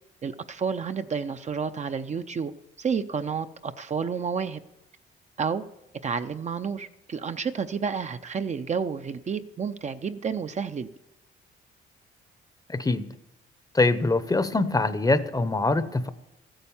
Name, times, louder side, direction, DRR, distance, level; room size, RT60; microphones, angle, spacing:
voice 1, 0.2-2.5 2.8-4.6 5.4-5.6 6.0-10.9, right 6 dB, 35° right, 9 dB, 0.6 m, -30 dB
voice 2, 12.7-13.1 13.7-16.1, left 2 dB, 20° left, 13 dB, 0.8 m, -23 dB
15.0 x 8.9 x 7.1 m, 0.91 s
cardioid pair, 90°, 20 cm